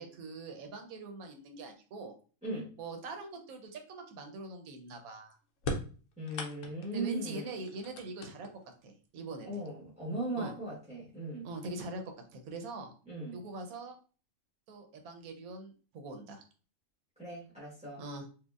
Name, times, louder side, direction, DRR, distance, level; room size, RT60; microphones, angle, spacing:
voice 1, 0.0-2.1 2.8-5.4 6.9-8.5 8.8-9.6 10.4-10.5 11.4-12.0 12.3-12.9 13.3-14.0 14.7-16.4 18.0-18.2, right 2 dB, 80° right, 4 dB, 1.2 m, -43 dB
sound 1, 5.6-7.0 7.6-8.8 9.8-9.9 10.9-11.0 11.4-11.9, left 1 dB, 65° left, 1.0 m, -39 dB
voice 2, 6.2-7.6 9.4-11.5 13.1-13.4 17.2-18.0, right 2 dB, 5° right, -7 dB, 0.9 m, -38 dB
4.5 x 2.5 x 2.4 m, 0.38 s
omnidirectional pair, 1.5 m